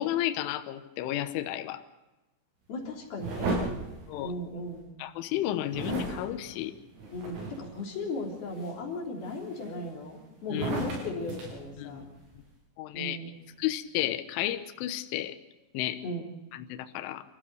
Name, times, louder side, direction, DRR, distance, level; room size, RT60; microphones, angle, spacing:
voice 1, 0.0-1.8 4.1-4.3 5.0-6.7 10.5-10.7 11.8-12.0 12.8-13.2 13.6-15.3 15.7-16.0 16.5-17.2, left 13 dB, 80° left, 8 dB, 3.3 m, -32 dB
voice 2, 2.7-3.8 4.2-4.9 7.1-12.1 12.9-13.3 16.0-16.3, left 2 dB, 50° left, 0 dB, 4.8 m, -36 dB
sound 1, 3.2-4.8 5.7-7.8 8.3-8.7 9.2-10.1 10.5-12.4, right 2 dB, 90° right, 8.7 m, -35 dB
29.5 x 15.0 x 6.7 m, 1.1 s
omnidirectional pair, 6.0 m